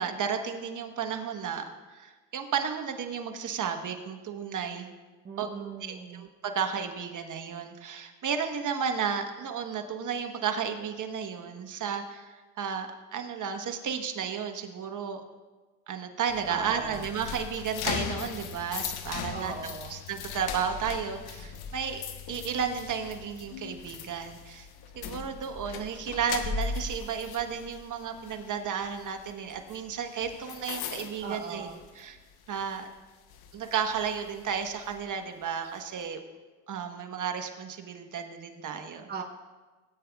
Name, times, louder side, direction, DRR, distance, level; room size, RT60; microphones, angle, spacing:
voice 1, 0.0-4.9 5.4-15.2 15.9-19.5 19.9-22.0 22.3-24.7 24.9-31.7 31.9-32.2 32.5-32.9 33.5-36.2 36.7-39.1, right 7 dB, 45° right, 6 dB, 1.2 m, -33 dB
voice 2, 5.2-6.3 16.5-17.0 19.3-19.9 31.2-31.8 39.1-39.2, right 5 dB, 25° right, 1 dB, 0.9 m, -38 dB
sound 1, 16.3-32.2 32.5-32.8 33.3-35.0, left 6 dB, 60° left, 1.0 m, -39 dB
17.5 x 9.2 x 2.4 m, 1.3 s
supercardioid pair, 85°, 42 cm